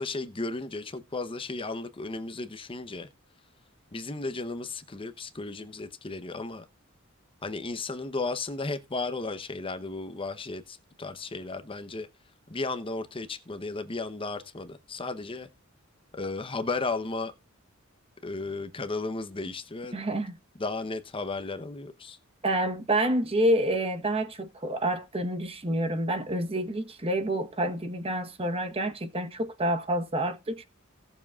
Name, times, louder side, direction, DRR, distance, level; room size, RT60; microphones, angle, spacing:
voice 1, 0.0-3.1 3.9-6.7 7.4-12.1 12.5-15.5 16.1-17.3 18.2-20.0 20.6-22.2, left 3 dB, 25° left, 0.8 m, -34 dB
voice 2, 19.9-20.3 22.4-30.6, right 1 dB, 30° right, 1.0 m, -28 dB
17.5 x 7.1 x 2.4 m
head